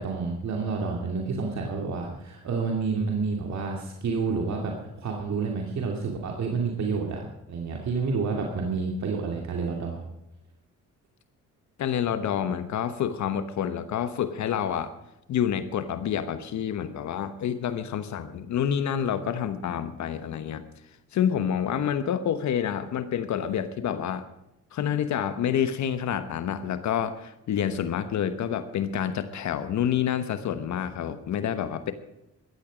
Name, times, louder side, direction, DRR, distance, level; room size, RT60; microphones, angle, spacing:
voice 1, 0.0-10.0, right 4 dB, 65° right, 1 dB, 2.5 m, -29 dB
voice 2, 11.8-14.9 15.3-20.6 21.1-24.3 24.7-31.9, left 9 dB, 70° left, 11 dB, 1.1 m, -28 dB
15.0 x 12.5 x 5.1 m, 0.89 s
cardioid pair, 90°, 30 cm